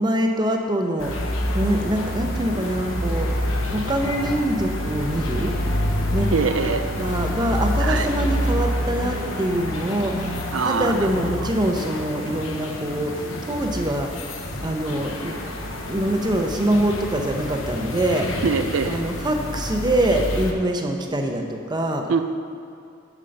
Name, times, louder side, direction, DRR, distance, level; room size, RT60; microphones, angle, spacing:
voice 1, 0.0-5.6 6.1-6.3 6.6-14.1 14.6-15.4 15.9-18.3 18.9-22.1, right 1 dB, 20° right, 3 dB, 0.8 m, -24 dB
sound 1, 1.0-20.5, left 1 dB, 80° left, 1.0 m, -27 dB
voice 2, 6.3-6.8 7.8-8.1 10.5-11.1 18.4-19.0 22.1-22.2, right 5 dB, 85° right, 8 dB, 0.5 m, -23 dB
7.6 x 7.3 x 5.2 m, 2.4 s
head